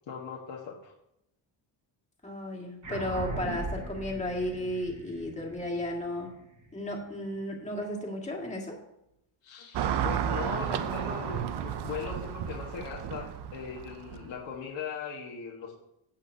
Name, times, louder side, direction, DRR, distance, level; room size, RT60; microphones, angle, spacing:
voice 1, 0.1-0.9 9.4-15.7, left 6 dB, 60° left, -3 dB, 1.5 m, -39 dB
voice 2, 2.2-6.3 6.7-8.8, left 1 dB, 15° left, -1 dB, 2.0 m, -34 dB
sound 1, 2.8-7.6, right 2 dB, 35° right, 2.9 m, -40 dB
Car passing by / Traffic noise roadway noise, 9.7-14.4, right 9 dB, 55° right, 0.7 m, -32 dB
14.5 x 8.5 x 2.8 m, 0.80 s
cardioid pair, 170°, 50 cm